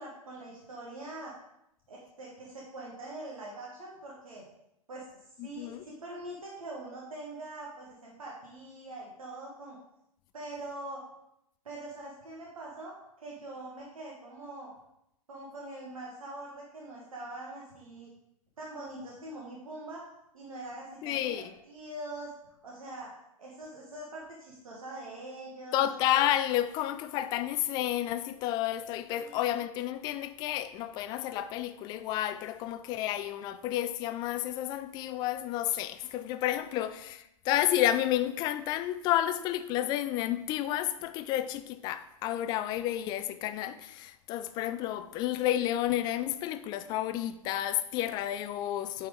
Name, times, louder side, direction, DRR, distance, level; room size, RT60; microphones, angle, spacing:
voice 1, 0.0-1.3 1.9-4.4 4.9-5.0 5.4-9.8 10.3-11.1 11.6-14.7 15.3-18.1 18.6-20.1 20.3-22.3 22.6-23.1 23.4-25.9 29.1-29.5 36.7-36.9, right 2 dB, 65° right, 1.3 m, -43 dB
voice 2, 5.4-5.8 21.0-21.5 25.7-49.1, left 12 dB, 25° left, 0.3 m, -31 dB
8.6 x 4.3 x 3.6 m
figure-of-eight pair, 105°, 19 cm